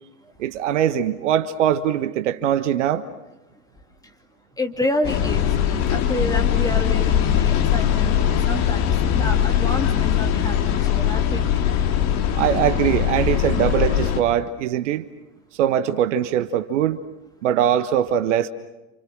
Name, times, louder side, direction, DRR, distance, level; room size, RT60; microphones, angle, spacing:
voice 1, 0.4-3.0 12.4-15.0 15.6-17.0 17.4-18.5, right 10 dB, 55° right, 10 dB, 1.4 m, -21 dB
voice 2, 4.6-11.6, left 2 dB, 10° left, 4 dB, 2.5 m, -29 dB
sound 1, 5.0-14.2, left 9 dB, 40° left, 2.4 m, -21 dB
29.5 x 28.5 x 6.3 m, 0.98 s
figure-of-eight pair, 90°, 43 cm